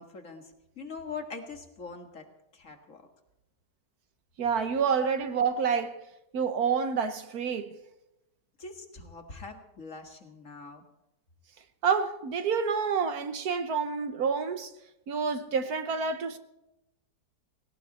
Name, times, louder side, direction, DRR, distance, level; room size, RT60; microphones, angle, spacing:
voice 1, 0.0-2.3 2.5-3.0 8.6-10.8, left 4 dB, 50° left, 2.2 m, -43 dB
voice 2, 4.4-6.0 6.3-7.8 11.8-14.7 15.1-16.4, right 6 dB, 65° right, 1.5 m, -28 dB
18.5 x 17.5 x 4.2 m
omnidirectional pair, 1.8 m